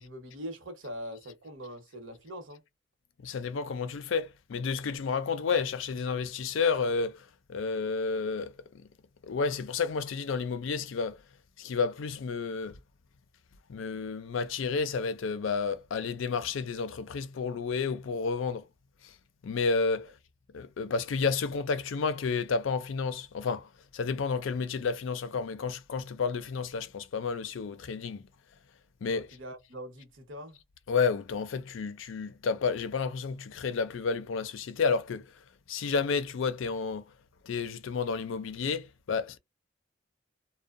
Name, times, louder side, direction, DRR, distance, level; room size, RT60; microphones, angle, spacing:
voice 1, 0.0-2.6 29.1-30.6, equal, 75° right, 0.9 m, -42 dB
voice 2, 3.2-8.9 9.2-11.2 11.6-12.8 13.7-18.6 19.0-19.2 19.4-20.1 20.5-28.2 29.0-29.3 30.9-37.1 37.4-39.4, left 5 dB, 75° left, 0.4 m, -31 dB
2.6 x 2.1 x 2.4 m
head